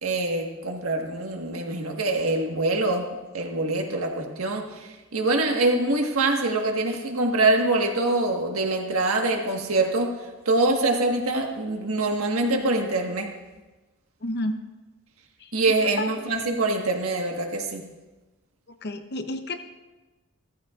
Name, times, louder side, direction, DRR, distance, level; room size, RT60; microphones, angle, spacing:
voice 1, 0.0-3.1 3.3-10.1 10.4-13.3 15.5-17.8, right 2 dB, 80° right, 2 dB, 1.5 m, -24 dB
voice 2, 14.2-14.6 15.4-16.1 18.7-19.6, left 1 dB, 50° left, 7 dB, 0.8 m, -31 dB
15.0 x 14.0 x 2.5 m, 1.2 s
head